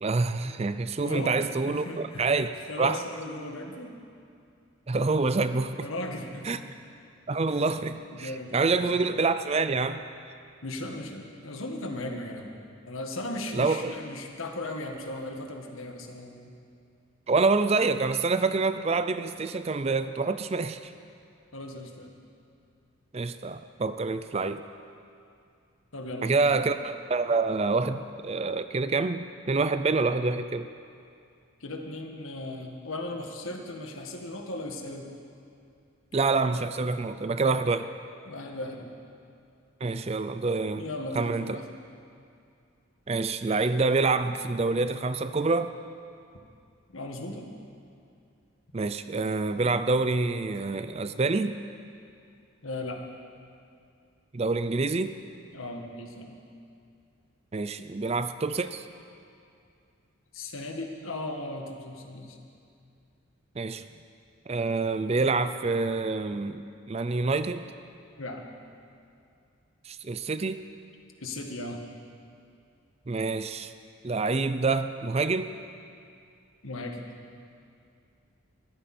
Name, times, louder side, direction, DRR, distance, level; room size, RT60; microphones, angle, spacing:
voice 1, 0.0-2.5 2.8-3.0 4.9-5.9 6.5-6.6 7.3-10.0 13.5-13.9 17.3-20.9 23.1-24.6 26.2-30.7 36.1-37.9 39.8-40.8 41.2-41.6 43.1-45.7 48.7-51.5 54.3-55.2 57.5-58.8 63.6-63.8 64.5-67.6 69.9-70.6 73.1-73.7 74.0-75.5, right 3 dB, 30° right, 11 dB, 0.4 m, -27 dB
voice 2, 1.0-1.4 1.7-2.3 2.7-3.9 5.8-6.6 8.1-8.9 10.6-12.5 12.8-16.5 21.5-22.1 25.9-26.6 31.6-35.1 38.3-38.9 40.7-41.7 46.9-47.5 52.6-53.0 55.5-56.4 60.3-62.4 68.2-68.5 71.2-71.8 76.6-77.0, left 2 dB, 70° left, 3 dB, 1.7 m, -37 dB
22.0 x 14.0 x 4.4 m, 2.4 s
head